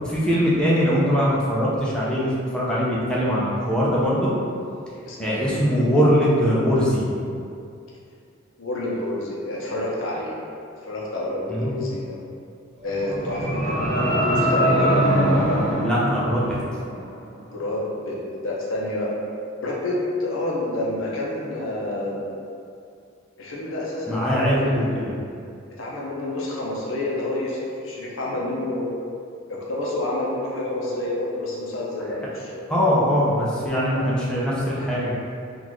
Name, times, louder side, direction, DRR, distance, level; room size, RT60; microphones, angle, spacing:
voice 1, 0.0-4.3 5.2-7.1 11.5-11.8 15.8-16.6 24.1-25.1 32.7-35.1, equal, 5° left, -7 dB, 0.5 m, -21 dB
voice 2, 5.0-5.5 8.6-10.5 10.8-12.2 12.8-14.9 17.5-18.2 18.4-19.1 19.6-22.3 23.4-24.9 25.8-28.9 29.5-32.7, left 2 dB, 80° left, -4 dB, 0.7 m, -28 dB
sound 1, 12.8-17.0, right 1 dB, 35° right, 0.8 m, -22 dB
3.8 x 2.5 x 3.0 m, 2.4 s
head